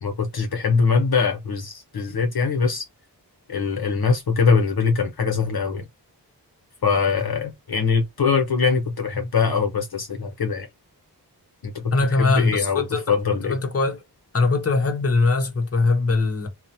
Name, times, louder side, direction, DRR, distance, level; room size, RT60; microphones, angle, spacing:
voice 1, 0.0-2.8 3.5-5.8 6.8-10.7 11.6-11.9 12.2-13.6, left 5 dB, 60° left, 0.7 m, -22 dB
voice 2, 11.9-13.2 13.4-14.0 14.3-16.5, left 3 dB, 35° left, 0.9 m, -21 dB
2.8 x 2.1 x 2.5 m
wide cardioid pair, 45°, 42 cm